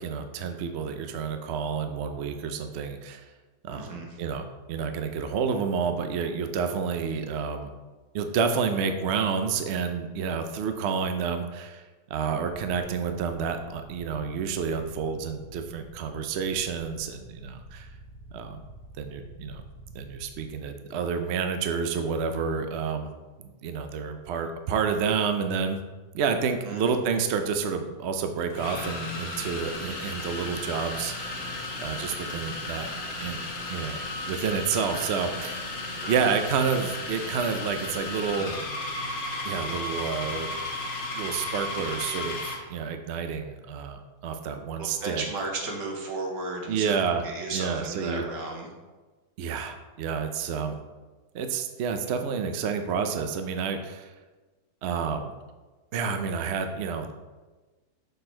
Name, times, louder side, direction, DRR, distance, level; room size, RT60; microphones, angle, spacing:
voice 1, 0.0-3.2 3.6-7.7 8.1-17.9 18.3-18.6 19.0-19.6 19.9-23.1 23.4-25.8 26.1-31.5 31.8-32.9 33.2-34.0 34.3-35.7 36.1-38.5 39.4-40.5 41.1-45.3 46.7-47.2 47.5-48.2 49.4-50.8 51.3-54.1 54.8-55.3 55.9-57.1, right 6 dB, 65° right, 7 dB, 0.6 m, -29 dB
voice 2, 3.7-4.1 26.7-26.8 36.0-36.2 44.8-47.0 47.2-48.7, right 3 dB, 85° right, 0 dB, 1.8 m, -34 dB
sound 1, 12.5-20.5, right 1 dB, 45° right, 2.2 m, -48 dB
sound 2, 28.5-42.7, left 2 dB, 60° left, 1.5 m, -34 dB
6.4 x 4.6 x 4.3 m, 1.3 s
omnidirectional pair, 1.8 m